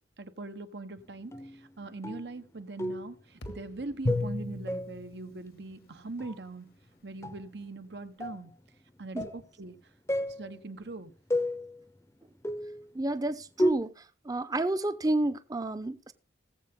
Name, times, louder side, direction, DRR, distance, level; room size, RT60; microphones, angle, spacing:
voice 1, 0.2-6.7 7.0-8.5 9.0-9.8 10.3-11.1, right 2 dB, 75° right, 1.1 m, -41 dB
sound 1, 1.3-1.7 2.0-2.4 2.8-3.2 3.5-3.8 4.1-5.1 6.2-6.4 7.2-7.4 8.2-8.5 9.2-9.5 10.1-10.6 11.3-11.9 12.4-12.9 13.6-13.7, left 1 dB, 15° left, 0.7 m, -32 dB
sound 2, 3.4-7.7, equal, 90° left, 2.0 m, -53 dB
Drum, 4.0-6.4, left 2 dB, 55° left, 1.0 m, -35 dB
voice 2, 12.9-13.9 14.2-16.1, right 2 dB, 20° right, 0.7 m, -30 dB
17.5 x 7.9 x 3.7 m
head